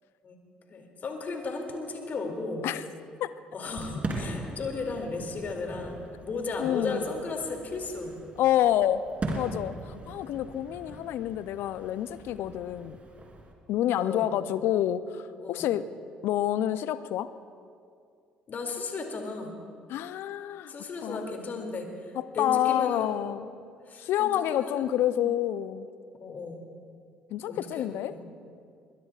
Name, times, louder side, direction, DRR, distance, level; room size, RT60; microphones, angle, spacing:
voice 1, 0.7-2.7 3.5-8.2 9.7-10.2 14.0-14.3 15.4-15.7 18.5-19.5 20.7-23.1 23.4-23.6 23.9-25.3 26.1-26.6 27.5-28.3, left 3 dB, 45° left, 3 dB, 2.7 m, -35 dB
Fireworks, 3.6-13.5, right 2 dB, 30° right, 3.2 m, -40 dB
voice 2, 6.6-7.0 8.4-9.1 9.4-13.0 13.7-15.9 16.2-17.3 19.9-20.7 21.0-21.3 22.2-23.5 24.0-25.9 27.3-28.1, left 12 dB, 60° left, 14 dB, 0.6 m, -28 dB
21.5 x 21.5 x 2.4 m, 2.3 s
hypercardioid pair, 50°, 4 cm